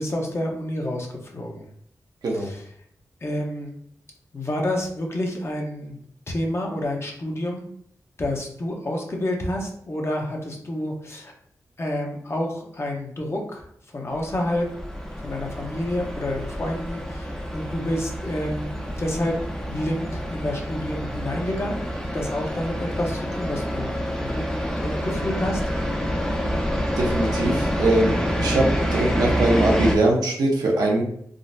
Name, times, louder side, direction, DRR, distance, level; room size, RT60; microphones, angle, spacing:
voice 1, 0.0-1.7 2.3-2.6 3.2-3.8 4.3-6.0 6.3-7.7 8.2-11.3 11.8-13.6 13.9-14.7 15.2-19.3 19.6-24.4 24.8-25.6, left 1 dB, 40° left, 0 dB, 0.8 m, -29 dB
sound 1, 14.1-30.0, equal, 10° left, 0.5 m, -27 dB
voice 2, 27.0-31.0, right 2 dB, 85° right, -1 dB, 0.7 m, -22 dB
3.7 x 2.1 x 2.6 m, 0.67 s
cardioid pair, 60°, 7 cm